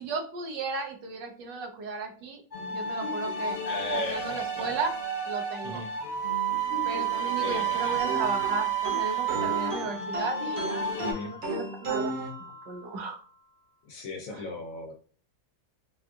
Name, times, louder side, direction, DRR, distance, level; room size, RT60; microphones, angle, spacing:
voice 1, 0.0-2.4 2.7-3.6 3.9-4.9 5.3-5.8 6.9-12.1 12.4-13.2 14.3-14.5, right 3 dB, 85° right, 4 dB, 1.4 m, -35 dB
sound 1, 2.5-11.1, right 6 dB, 45° left, 1.1 m, -30 dB
voice 2, 3.7-4.8 5.6-5.9 7.4-8.0 11.0-11.3 13.9-14.9, left 1 dB, 65° left, 3 dB, 0.9 m, -36 dB
sound 2, 8.0-13.1, right 2 dB, 60° right, 1.3 m, -35 dB
4.2 x 2.4 x 2.3 m, 0.42 s
omnidirectional pair, 1.9 m